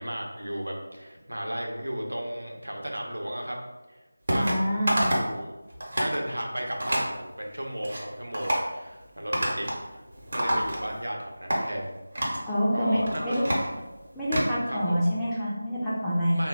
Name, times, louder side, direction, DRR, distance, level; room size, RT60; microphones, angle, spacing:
voice 1, 0.0-3.6 3.9-4.0 4.3-5.5 6.0-12.0 12.7-13.4 14.7-15.0 16.3-16.5, equal, 80° right, 0 dB, 0.8 m, -34 dB
sound 1, 4.3-4.6 4.9-5.3 5.7-6.2 6.8-7.1 7.6-8.0 8.3-8.7 9.3-9.8 10.1-11.1 11.5-11.6 12.1-12.4 12.9-14.5, right 1 dB, 45° right, 0.9 m, -27 dB
voice 2, 4.4-5.0 12.5-13.4 14.1-16.4, equal, 5° left, -12 dB, 0.5 m, -26 dB
3.1 x 2.3 x 3.7 m, 1.1 s
figure-of-eight pair, 165°, 0 cm